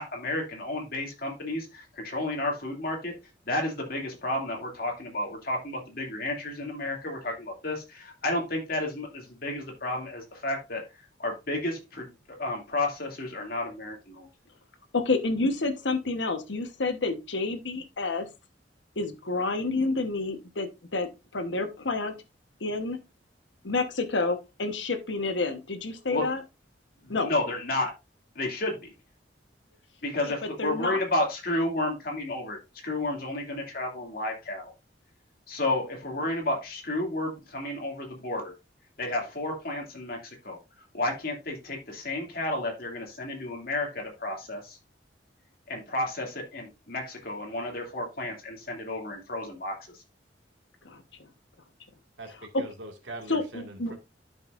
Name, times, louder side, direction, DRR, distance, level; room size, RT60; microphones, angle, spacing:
voice 1, 0.0-3.1 3.5-10.8 11.2-12.1 12.4-14.3 26.1-26.3 27.0-27.9 28.3-28.7 30.0-34.7 35.5-38.5 39.0-40.6 40.9-44.8 45.7-49.8, left 2 dB, 55° left, 2.5 m, -31 dB
voice 2, 14.9-18.3 19.0-22.1 22.6-23.0 23.6-26.4 27.1-27.3 30.0-30.3 30.6-31.0 50.8-51.0 52.3-52.4 53.3-53.9, left 3 dB, 80° left, 1.2 m, -29 dB
voice 3, 52.2-54.0, right 2 dB, 85° right, 2.1 m, -42 dB
12.0 x 5.5 x 2.5 m
head